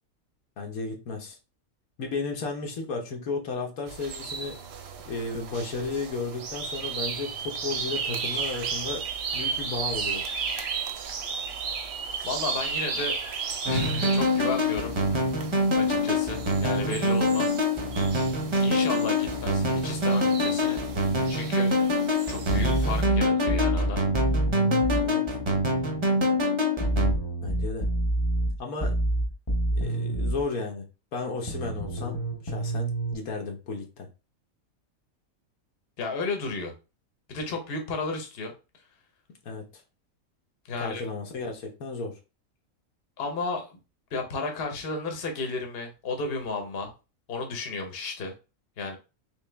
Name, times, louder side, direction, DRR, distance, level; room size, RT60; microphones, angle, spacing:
voice 1, 0.6-1.4 2.0-4.6 5.0-9.0 9.3-10.2 25.0-25.2 27.4-27.9 28.6-29.0 29.7-34.1 39.4-39.6 40.8-42.1, left 3 dB, 85° left, 2 dB, 1.4 m, -34 dB
sound 1, 3.9-23.0, right 6 dB, 60° right, 0.8 m, -35 dB
voice 2, 12.2-13.2 13.6-15.3 15.7-17.6 18.6-20.8 21.3-21.7 22.3-24.0 36.0-36.7 37.3-38.5 40.7-41.1 43.2-43.8 44.1-46.9 47.3-48.3 48.8-49.0, left 3 dB, 50° left, 3 dB, 1.1 m, -33 dB
sound 2, 13.7-27.1, left 1 dB, 25° right, 0.7 m, -25 dB
sound 3, 22.5-25.1 26.8-30.4 31.5-33.1, right 1 dB, 25° left, 0.8 m, -27 dB
3.6 x 3.2 x 3.3 m, 0.30 s
omnidirectional pair, 1.5 m